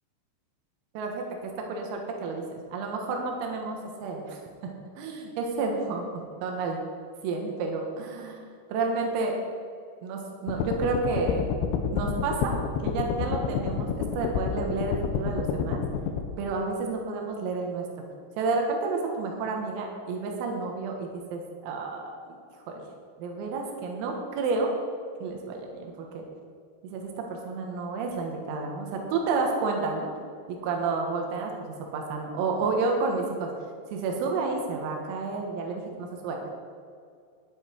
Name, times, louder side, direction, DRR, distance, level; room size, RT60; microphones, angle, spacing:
voice 1, 1.0-2.4 2.7-6.1 6.4-6.8 7.2-8.4 8.7-9.4 10.0-11.4 11.9-12.5 12.8-15.8 16.4-17.9 18.4-22.1 22.7-22.8 23.2-24.7 25.2-26.2 26.8-30.1 30.5-33.5 33.9-36.5, right 4 dB, 85° right, 1 dB, 4.2 m, -30 dB
sound 1, 10.5-16.2, left 7 dB, 80° left, 2.8 m, -29 dB
13.5 x 10.5 x 4.6 m, 2.3 s
omnidirectional pair, 5.9 m